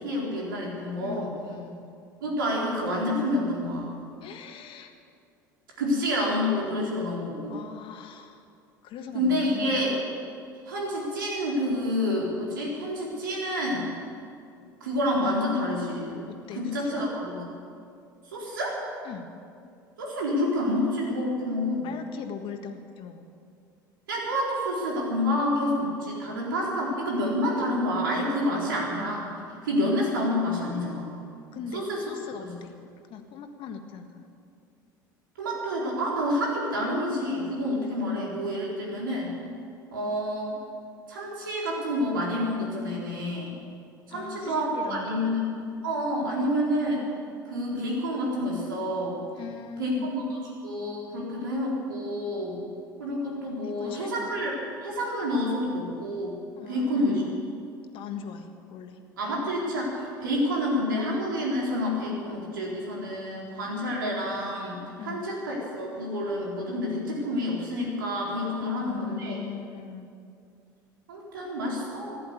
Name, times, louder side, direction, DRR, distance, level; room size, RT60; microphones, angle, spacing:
voice 1, 0.0-1.3 2.2-3.9 5.8-7.5 9.1-9.9 10.7-13.9 14.8-16.2 16.5-17.4 18.3-18.8 20.0-21.9 24.1-29.3 29.6-31.2 31.7-32.0 32.4-32.5 35.4-39.4 39.9-40.6 41.1-43.6 44.1-45.4 45.8-47.0 47.5-49.2 49.8-50.2 50.6-52.6 53.0-54.5 54.8-56.4 56.7-57.3 59.2-69.4 71.1-72.2, left 1 dB, 80° right, -3 dB, 4.3 m, -28 dB
voice 2, 1.0-1.9 4.2-4.9 7.5-8.4 8.8-9.8 16.3-17.1 19.0-19.3 21.8-23.2 31.5-32.7 33.1-34.3 38.1-38.3 44.1-45.5 49.4-50.1 53.6-54.3 56.6-57.4 57.9-59.0 65.0-65.2 68.6-70.1, left 7 dB, 50° left, 6 dB, 1.6 m, -40 dB
15.0 x 11.0 x 8.4 m, 2.4 s
hypercardioid pair, 70°, 11 cm